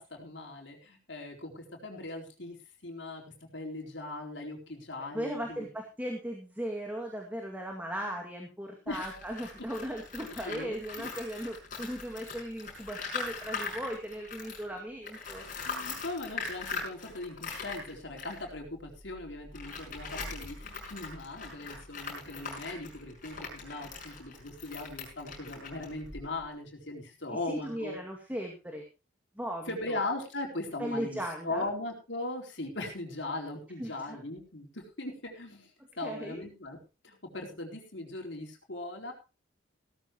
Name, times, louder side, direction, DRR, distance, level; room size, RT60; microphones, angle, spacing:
voice 1, 0.0-2.6 2.8-5.7 8.9-9.1 10.4-11.1 15.5-28.0 29.7-35.7 36.0-36.8 37.0-39.1, left 2 dB, 65° left, 1 dB, 4.2 m, -39 dB
voice 2, 5.1-15.4 27.3-28.8 29.4-30.0 30.8-31.7 33.8-34.2 35.8-36.4, equal, 10° right, 1 dB, 2.2 m, -37 dB
Tools, 8.9-14.7 15.0-26.5, left 4 dB, 45° left, 5.6 m, -41 dB
17.0 x 13.5 x 3.0 m, 0.30 s
head